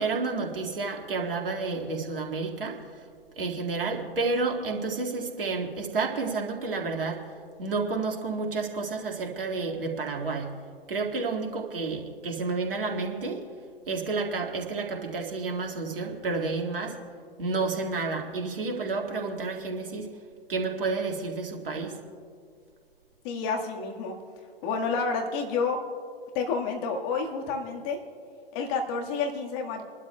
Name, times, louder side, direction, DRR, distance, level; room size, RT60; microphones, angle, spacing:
voice 1, 0.0-2.8 3.4-7.2 7.6-10.5 10.9-13.4 13.9-17.0 17.4-20.1 20.5-21.9, right 4 dB, 65° right, 1 dB, 2.1 m, -30 dB
voice 2, 23.2-24.2 24.6-25.8 26.3-28.0 28.5-29.8, left 4 dB, 35° left, 2 dB, 1.7 m, -29 dB
28.5 x 12.0 x 2.3 m, 2.2 s
figure-of-eight pair, 115°, 30 cm